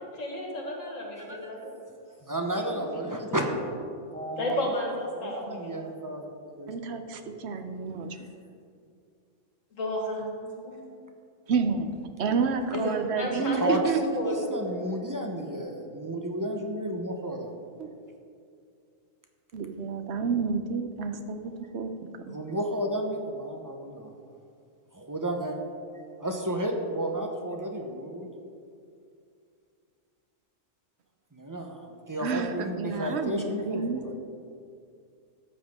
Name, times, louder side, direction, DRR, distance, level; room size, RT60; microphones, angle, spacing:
voice 1, 0.1-1.7 2.5-2.6 2.9-3.2 4.4-5.8 9.8-10.9 12.7-13.6 14.2-14.5, left 1 dB, 85° left, 0 dB, 2.1 m, -33 dB
voice 2, 1.2-1.7 2.2-3.4 4.1-4.7 5.2-7.0 13.4-17.5 22.3-24.1 24.9-25.6 26.2-28.3 31.3-34.1, right 1 dB, 20° right, 2 dB, 0.8 m, -32 dB
voice 3, 6.7-8.2 11.5-11.9 12.2-14.0 17.8-17.9 19.5-21.9 22.3-22.4 32.2-34.0, right 5 dB, 60° right, 7 dB, 1.0 m, -29 dB
13.0 x 8.0 x 3.6 m, 2.4 s
omnidirectional pair, 1.3 m